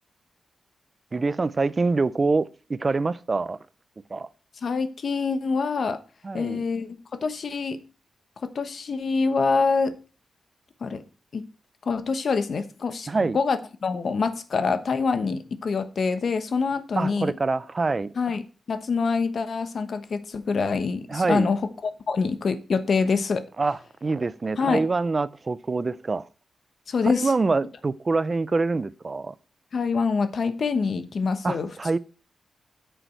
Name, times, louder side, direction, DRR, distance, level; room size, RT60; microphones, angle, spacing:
voice 1, 1.1-3.6 4.1-4.3 6.2-6.6 13.1-13.4 17.0-18.1 21.1-21.5 23.6-26.3 27.0-29.3 31.4-32.0, right 3 dB, 30° right, 0.5 m, -25 dB
voice 2, 4.6-6.0 6.3-7.8 8.4-9.9 10.8-11.0 11.3-11.5 11.9-17.3 18.2-18.4 18.7-21.6 22.1-23.4 24.6-24.9 26.9-27.3 29.7-31.7, left 4 dB, 55° left, 1.1 m, -25 dB
8.7 x 6.9 x 4.5 m
wide cardioid pair, 115°, 0 cm